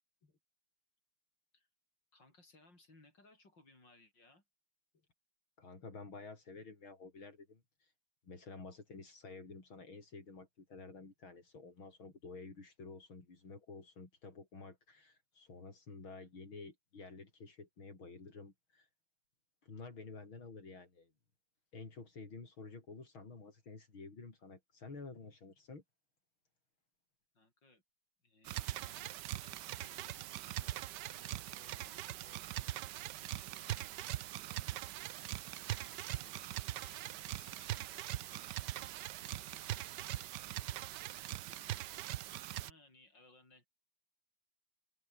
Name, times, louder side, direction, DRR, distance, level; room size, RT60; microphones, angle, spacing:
voice 1, 2.1-4.4 27.3-27.8 28.2-32.9 33.1-34.0 34.4-34.8 35.6-38.5 39.4-40.4 41.5-42.1 42.5-43.7, left 2 dB, 60° left, 8.4 m, -65 dB
voice 2, 5.6-7.9 8.2-18.9 19.6-21.1 21.7-25.8, left 4 dB, 80° left, 5.5 m, -51 dB
sound 1, 28.4-42.7, right 14 dB, 70° right, 1.2 m, -42 dB
open air
omnidirectional pair, 2.2 m